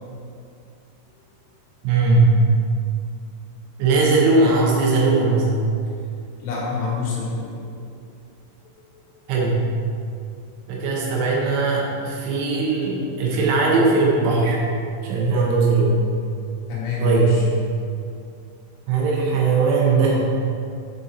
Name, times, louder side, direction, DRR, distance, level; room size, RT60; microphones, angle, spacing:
voice 1, 1.8-2.4 3.8-5.6 9.3-9.6 10.7-14.6 15.0-16.0 17.0-17.4 18.9-20.2, right 3 dB, 75° right, -3 dB, 3.3 m, -19 dB
voice 2, 6.4-7.5 9.0-9.1 16.7-17.4 18.1-18.2, left 5 dB, 75° left, -5 dB, 3.8 m, -27 dB
9.6 x 4.5 x 4.1 m, 2.5 s
omnidirectional pair, 5.9 m